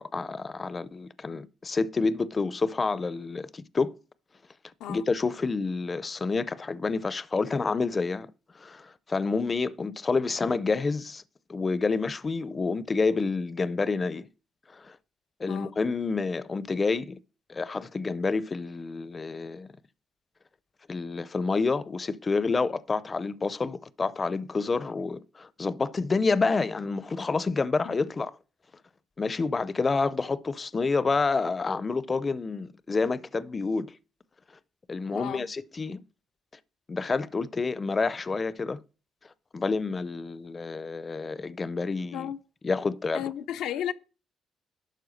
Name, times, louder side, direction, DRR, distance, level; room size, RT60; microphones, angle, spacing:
voice 1, 0.0-4.0 4.9-8.3 8.5-11.2 11.5-14.3 14.7-15.0 15.4-17.2 17.5-19.7 20.9-28.3 29.2-34.0 34.9-36.0 36.9-38.8 39.5-42.3 42.6-43.3, left 4 dB, 30° left, 0.5 m, -28 dB
voice 2, 35.1-35.5 42.1-42.4 43.1-43.9, left 10 dB, 90° left, 0.6 m, -34 dB
11.5 x 4.6 x 6.4 m
cardioid pair, 90°, 0 cm